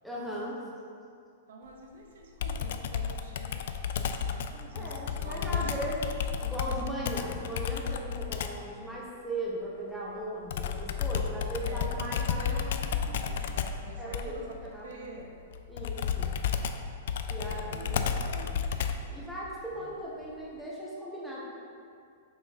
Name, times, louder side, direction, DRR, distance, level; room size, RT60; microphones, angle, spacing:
voice 1, 0.0-0.6 4.7-12.7 14.0-14.4 14.7-15.2 15.7-16.3 17.3-18.1 19.1-21.4, right 1 dB, ahead, -7 dB, 0.9 m, -38 dB
voice 2, 1.5-5.8 11.6-15.4 17.1-18.7 19.7-20.0, right 2 dB, 70° right, 1 dB, 0.8 m, -46 dB
Computer keyboard, 2.4-8.7 10.5-19.2, left 7 dB, 60° left, 0.3 m, -32 dB
5.8 x 3.9 x 4.1 m, 2.3 s
supercardioid pair, 160°, 0 cm